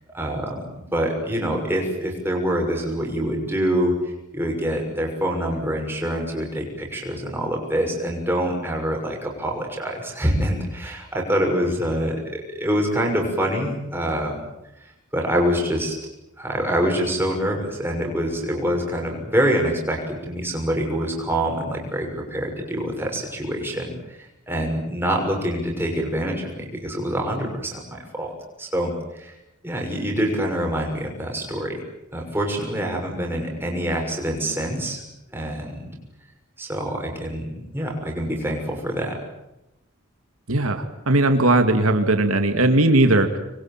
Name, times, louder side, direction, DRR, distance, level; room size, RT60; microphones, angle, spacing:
voice 1, 0.1-3.9 4.3-14.4 15.1-15.9 16.4-24.2 24.5-28.3 28.6-29.3 29.6-31.8 32.1-35.0 35.3-35.9 36.6-39.2, equal, 10° right, 0 dB, 6.4 m, -25 dB
voice 2, 40.5-43.4, right 2 dB, 80° right, 6 dB, 2.4 m, -18 dB
26.0 x 23.0 x 9.1 m, 0.91 s
head